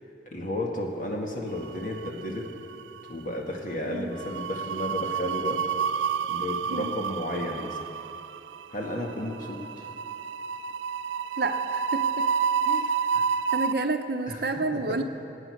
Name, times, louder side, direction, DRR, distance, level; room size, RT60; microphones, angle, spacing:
voice 1, 0.3-2.5 3.1-5.6 6.3-7.8 8.7-9.8 13.1-13.2 14.3-14.4 14.7-15.0, left 1 dB, 45° left, -1 dB, 2.0 m, -33 dB
sound 1, 1.7-2.5 2.7-3.0 4.2-13.7, right 7 dB, 85° right, 0.3 m, -29 dB
voice 2, 11.4-12.3 12.7-13.0 13.5-15.0, right 3 dB, 60° right, 7 dB, 0.8 m, -30 dB
20.5 x 9.1 x 6.4 m, 3.0 s
head